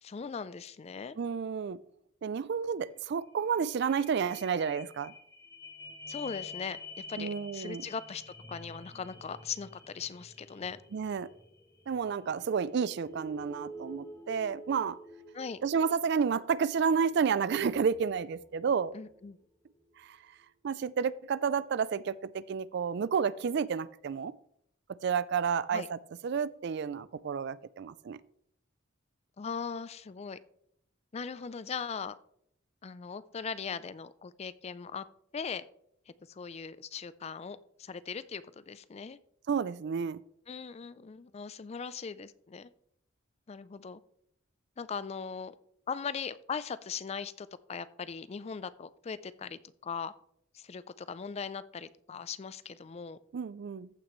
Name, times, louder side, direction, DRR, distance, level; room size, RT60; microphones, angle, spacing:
voice 1, 0.0-1.2 6.1-6.8 7.1-8.2 8.5-10.8 15.3-15.6 18.9-19.4 25.7-25.9 29.4-30.4 31.1-32.2 32.8-35.0 35.3-35.7 36.3-39.2 40.5-42.7 43.5-44.0 44.8-45.5 45.9-50.1 50.5-53.2, left 6 dB, 30° left, 16 dB, 0.4 m, -39 dB
voice 2, 1.2-1.8 2.2-5.1 7.2-7.8 10.9-11.3 11.9-15.0 15.6-18.9 20.0-20.2 20.6-24.3 24.9-26.0 26.2-28.2 39.5-40.2 53.3-53.9, right 6 dB, 55° right, 19 dB, 0.4 m, -31 dB
sound 1, 3.0-3.1 3.3-19.3 19.8-19.9, left 2 dB, 15° left, 1.1 m, -49 dB
14.5 x 6.0 x 3.1 m, 0.70 s
head